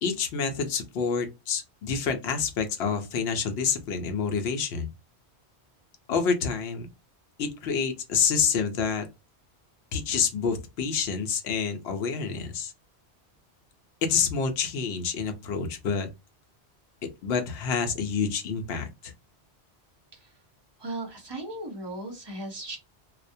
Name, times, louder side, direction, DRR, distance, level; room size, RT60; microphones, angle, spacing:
voice 1, 0.0-4.9 6.1-6.9 7.4-9.1 9.9-12.7 14.0-16.1 17.2-19.1, left 6 dB, 75° left, 0.8 m, -28 dB
voice 2, 20.8-22.8, right 1 dB, 25° right, 0.7 m, -37 dB
2.4 x 2.1 x 2.5 m
omnidirectional pair, 1.1 m